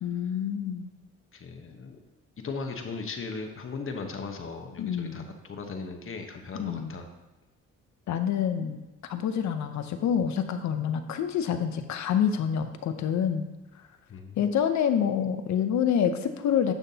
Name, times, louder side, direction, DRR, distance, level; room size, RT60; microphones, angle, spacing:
voice 1, 0.0-0.9 4.8-5.2 6.6-6.9 8.1-8.8 9.1-13.5 14.4-16.7, left 8 dB, 65° left, 8 dB, 0.8 m, -27 dB
voice 2, 1.3-2.0 2.4-7.1 14.1-14.4, left 4 dB, 45° left, 5 dB, 1.1 m, -37 dB
10.5 x 5.8 x 2.8 m, 1.1 s
cardioid pair, 90°, 30 cm